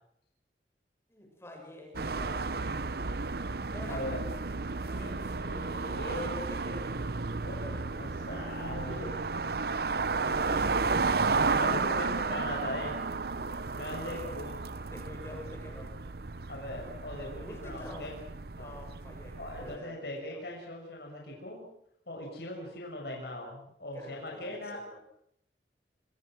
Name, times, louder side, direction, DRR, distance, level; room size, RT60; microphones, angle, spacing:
voice 1, 1.1-3.2 3.7-4.1 4.7-5.2 6.0-7.3 7.6-8.5 10.2-10.9 11.9-12.1 14.1-14.4 14.9-15.9 17.4-18.2 18.6-20.5 23.9-25.0, left 1 dB, 15° left, 1 dB, 7.1 m, -48 dB
sound 1, 1.9-19.8, right 4 dB, 60° right, 0.9 m, -33 dB
voice 2, 3.9-4.2 5.0-6.3 7.4-9.2 11.2-13.0 13.7-14.6 16.5-18.1 18.5-18.8 19.4-21.7 22.1-24.8, left 1 dB, 65° left, 0 dB, 6.5 m, -40 dB
26.5 x 25.0 x 6.3 m, 0.71 s
head